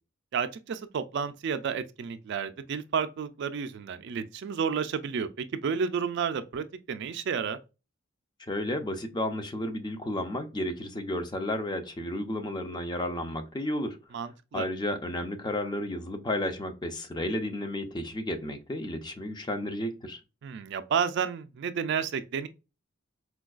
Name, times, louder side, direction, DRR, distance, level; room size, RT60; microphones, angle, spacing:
voice 1, 0.3-7.6 14.1-14.7 20.4-22.5, right 6 dB, 60° right, 0.3 m, -31 dB
voice 2, 8.5-14.0 14.5-20.2, left 1 dB, 20° left, 0.5 m, -32 dB
4.4 x 2.3 x 2.3 m
head